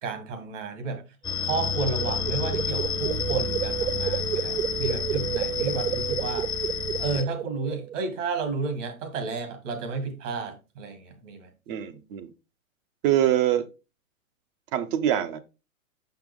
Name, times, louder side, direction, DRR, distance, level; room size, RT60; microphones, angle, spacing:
voice 1, 0.0-1.0 1.4-6.5 7.0-11.5, right 4 dB, 60° right, 2.5 m, -32 dB
sound 1, 1.2-7.2, left 6 dB, 10° left, 0.8 m, -30 dB
sound 2, 1.3-8.0, right 10 dB, 90° right, 0.7 m, -31 dB
voice 2, 11.7-12.3 13.0-13.6 14.7-15.4, right 11 dB, 40° right, 0.9 m, -24 dB
6.0 x 5.8 x 3.6 m
hypercardioid pair, 125°, 41 cm